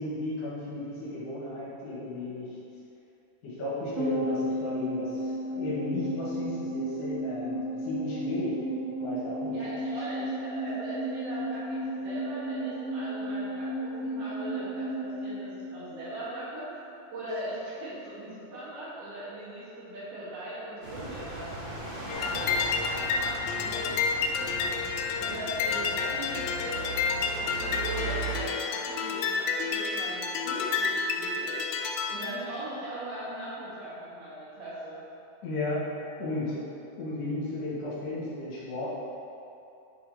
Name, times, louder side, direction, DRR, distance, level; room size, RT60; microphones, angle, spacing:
voice 1, 0.0-2.6 3.4-8.7 9.0-9.6 35.4-35.9 36.2-36.7 37.0-38.9, left 2 dB, 65° left, -8 dB, 3.6 m, -34 dB
sound 1, 4.0-16.5 16.7-16.8, equal, 50° right, 1.9 m, -33 dB
voice 2, 9.5-16.7 17.1-26.9 27.2-35.0, right 1 dB, 65° right, -10 dB, 3.0 m, -40 dB
sound 2, 20.8-28.4, right 3 dB, 90° right, 1.1 m, -38 dB
sound 3, 22.1-32.3, left 5 dB, 80° left, 2.5 m, -30 dB
10.5 x 4.3 x 3.9 m, 2.8 s
omnidirectional pair, 5.1 m